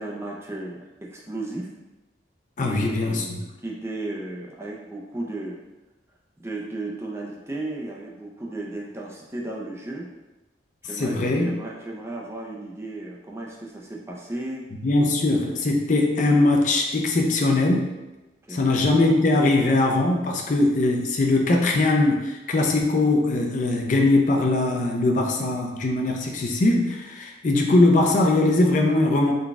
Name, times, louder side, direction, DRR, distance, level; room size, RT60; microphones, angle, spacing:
voice 1, 0.0-1.7 2.6-5.6 6.4-10.1 10.8-11.2 11.4-14.7 18.5-18.6, right 2 dB, 15° right, -2 dB, 0.4 m, -34 dB
voice 2, 2.6-3.4 11.0-11.5 14.8-17.9 18.5-29.3, left 2 dB, 45° left, 2 dB, 0.4 m, -21 dB
3.9 x 2.3 x 3.5 m, 1.1 s
head